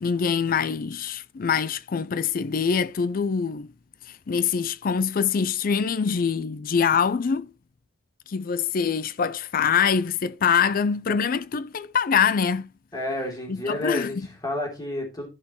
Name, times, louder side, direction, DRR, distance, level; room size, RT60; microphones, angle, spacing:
voice 1, 0.0-3.7 4.3-7.5 8.3-12.7 13.5-14.3, left 6 dB, 50° left, 0.4 m, -24 dB
voice 2, 12.9-14.2 14.4-15.3, left 1 dB, 20° left, 3.2 m, -30 dB
11.5 x 6.0 x 3.0 m
head